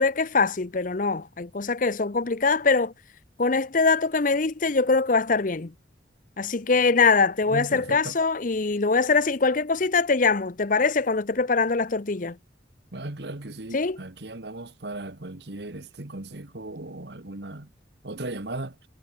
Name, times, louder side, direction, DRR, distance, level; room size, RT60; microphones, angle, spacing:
voice 1, 0.0-2.9 3.4-5.7 6.4-12.4 13.7-14.0, left 4 dB, 45° left, 0.8 m, -23 dB
voice 2, 7.5-8.2 12.9-17.7 18.0-18.7, right 2 dB, 60° right, 1.6 m, -36 dB
head